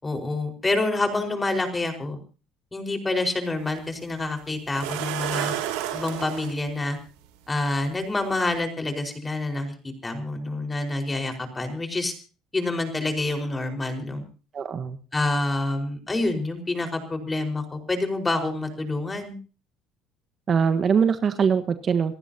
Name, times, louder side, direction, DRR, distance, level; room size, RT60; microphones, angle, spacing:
voice 1, 0.0-2.2 2.7-5.5 5.9-7.0 7.5-12.1 12.5-14.3 15.1-19.4, left 2 dB, 20° left, 5 dB, 4.9 m, -27 dB
sound 1, 3.6-3.7 4.7-6.5 7.8-7.9 8.4-8.5, right 12 dB, 90° right, 3.0 m, -30 dB
voice 2, 14.5-15.0 20.5-22.2, right 6 dB, 45° right, 9 dB, 1.4 m, -22 dB
28.0 x 15.0 x 2.9 m, 0.35 s
supercardioid pair, 85°, 0 cm